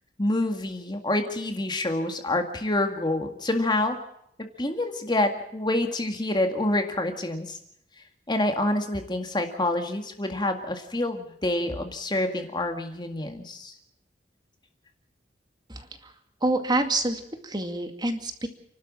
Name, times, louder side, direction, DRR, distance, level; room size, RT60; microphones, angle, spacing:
voice 1, 0.2-4.0 4.4-7.6 8.3-13.7, left 1 dB, 25° left, 5 dB, 2.0 m, -27 dB
voice 2, 15.7-16.1 16.4-18.5, right 2 dB, 25° right, 6 dB, 2.3 m, -27 dB
29.5 x 12.5 x 7.5 m, 0.75 s
head